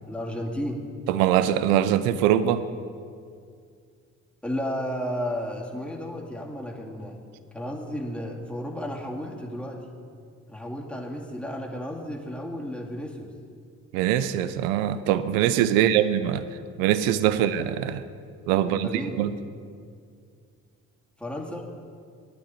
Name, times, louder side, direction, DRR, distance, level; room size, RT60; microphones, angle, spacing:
voice 1, 0.1-0.8 4.4-7.2 7.5-9.9 10.5-13.3 15.7-16.1 17.3-17.5 18.6-19.2 21.2-21.7, equal, 5° left, -1 dB, 2.2 m, -33 dB
voice 2, 1.1-2.6 13.9-16.4 16.8-18.0 18.5-19.3, right 11 dB, 90° right, 13 dB, 0.5 m, -23 dB
8.9 x 7.2 x 9.0 m, 2.2 s
hypercardioid pair, 50°, 38 cm